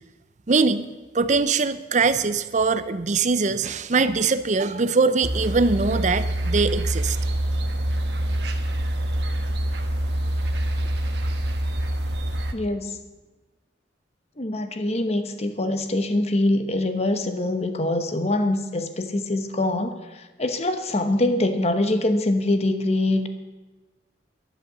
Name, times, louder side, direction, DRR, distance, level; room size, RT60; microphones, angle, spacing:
voice 1, 0.5-0.9 1.1-7.2, right 4 dB, 40° right, 12 dB, 0.6 m, -22 dB
sound 1, 5.2-12.5, right 1 dB, 70° right, 1.3 m, -25 dB
voice 2, 12.5-13.0 14.4-23.3, left 1 dB, 35° left, 9 dB, 1.0 m, -24 dB
11.5 x 11.0 x 6.8 m, 1.2 s
head